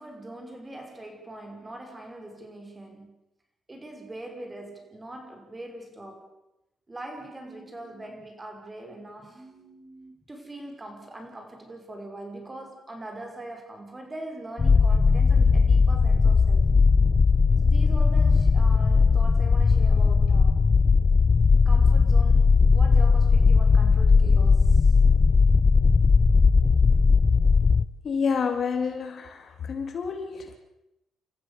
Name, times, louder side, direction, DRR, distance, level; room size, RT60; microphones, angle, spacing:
voice 1, 0.0-3.2 3.7-6.3 6.9-16.7 17.6-20.6 21.6-25.0, right 1 dB, 20° right, 5.7 m, -42 dB
sound 1, 14.6-27.9, left 4 dB, 35° left, 0.9 m, -18 dB
voice 2, 28.0-30.6, left 5 dB, 50° left, 3.3 m, -29 dB
29.5 x 14.5 x 7.0 m
cardioid pair, 90°, 0 cm